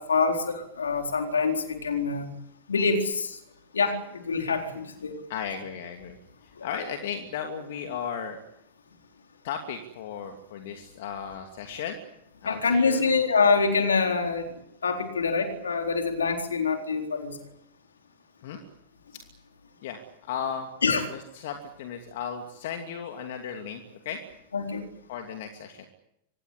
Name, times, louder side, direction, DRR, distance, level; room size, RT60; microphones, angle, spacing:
voice 1, 0.0-2.3 2.7-3.4 3.7-5.2 6.6-6.7 12.4-14.5 14.8-17.4 20.8-21.1 24.5-24.8, left 4 dB, 70° left, 4 dB, 4.1 m, -25 dB
voice 2, 5.3-8.4 9.4-12.0 12.4-13.0 18.4-18.6 19.1-19.2 19.8-20.0 20.3-20.7 21.1-24.2 25.1-25.9, left 7 dB, 55° left, 5 dB, 2.7 m, -35 dB
25.5 x 20.0 x 8.5 m, 0.80 s
figure-of-eight pair, 90°, 0 cm